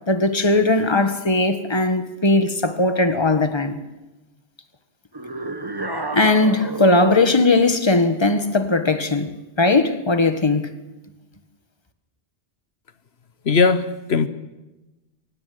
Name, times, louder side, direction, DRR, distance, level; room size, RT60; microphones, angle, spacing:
voice 1, 0.1-3.8 6.1-9.3 9.6-10.7, left 2 dB, 25° left, 1.6 m, -18 dB
sound 1, 5.1-7.4, right 2 dB, 20° right, 1.2 m, -30 dB
voice 2, 13.4-14.3, left 4 dB, 75° left, 1.2 m, -18 dB
24.0 x 17.0 x 9.5 m
omnidirectional pair, 1.1 m